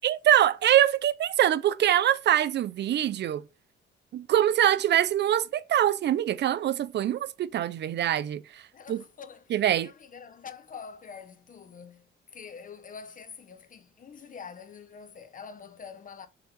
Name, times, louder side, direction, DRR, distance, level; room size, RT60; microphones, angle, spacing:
voice 1, 0.0-3.4 4.1-8.6 8.9-9.0 9.5-9.9, right 11 dB, 60° right, 0.5 m, -24 dB
voice 2, 8.7-16.3, left 6 dB, 45° left, 1.1 m, -45 dB
5.9 x 3.8 x 5.3 m
cardioid pair, 90°, 20 cm